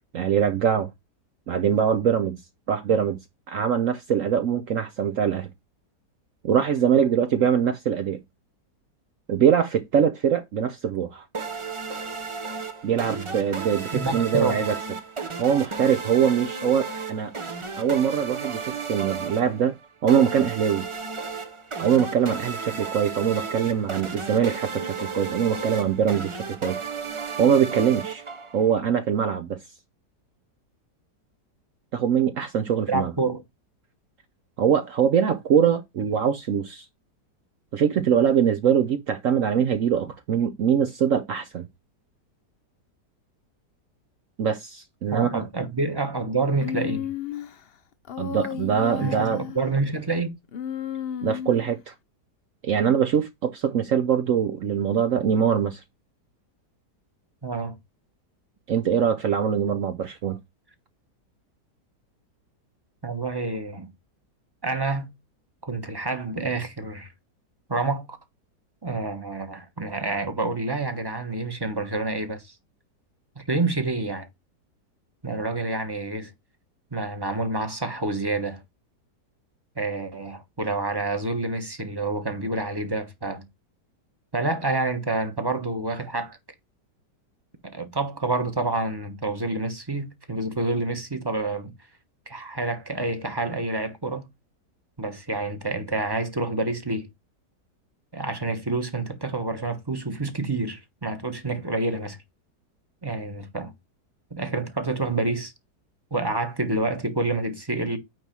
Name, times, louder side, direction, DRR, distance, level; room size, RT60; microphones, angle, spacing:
voice 1, 0.1-0.9 1.5-2.4 2.7-3.2 3.5-5.5 6.4-8.2 9.3-11.2 12.8-14.8 15.4-17.3 17.8-19.7 20.0-20.9 21.8-26.8 27.4-28.2 28.5-29.6 31.9-33.1 34.6-36.8 37.7-41.7 44.4-45.4 48.2-49.4 51.2-51.9 52.6-55.8 58.7-60.4, right 8 dB, 60° right, 0.9 m, -23 dB
sound 1, 11.3-28.8, right 5 dB, 35° right, 0.5 m, -34 dB
voice 2, 13.9-14.6 32.9-33.4 45.1-47.1 49.0-50.3 57.4-57.8 63.0-63.9 64.6-65.1 65.6-67.1 67.7-68.2 68.8-72.5 73.4-74.3 75.2-76.3 76.9-78.6 79.8-83.4 84.3-86.4 87.6-91.7 92.3-94.3 95.0-97.1 98.1-102.2 103.0-103.7 104.3-105.5 106.1-108.0, right 2 dB, 15° right, 1.0 m, -28 dB
Human voice, 46.6-47.5 48.1-49.6 50.5-51.8, left 9 dB, 65° left, 0.5 m, -33 dB
9.2 x 3.1 x 5.9 m
omnidirectional pair, 1.8 m